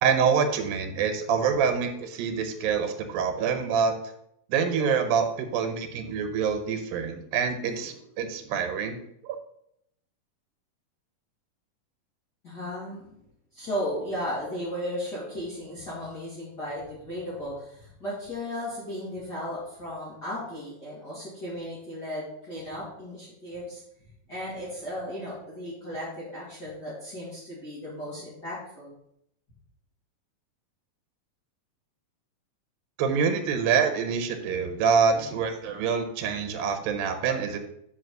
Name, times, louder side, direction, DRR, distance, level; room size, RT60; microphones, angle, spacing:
voice 1, 0.0-3.9 4.5-9.0 9.2-9.4 33.0-37.6, right 6 dB, 85° right, 7 dB, 2.7 m, -26 dB
voice 2, 7.6-8.0 12.4-13.1 13.5-23.8 24.3-28.9 35.1-35.4, equal, 30° left, -8 dB, 2.5 m, -35 dB
6.1 x 5.1 x 6.5 m, 0.75 s
omnidirectional pair, 4.0 m